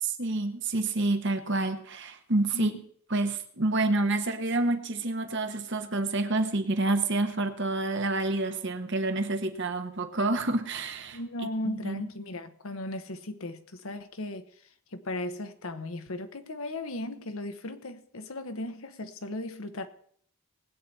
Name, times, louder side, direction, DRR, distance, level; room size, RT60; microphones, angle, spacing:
voice 1, 0.0-2.7 3.1-11.2 11.6-12.0, right 2 dB, 55° right, 1.2 m, -28 dB
voice 2, 11.1-14.5 14.9-19.9, left 1 dB, 70° left, 1.0 m, -36 dB
19.5 x 8.4 x 4.2 m
head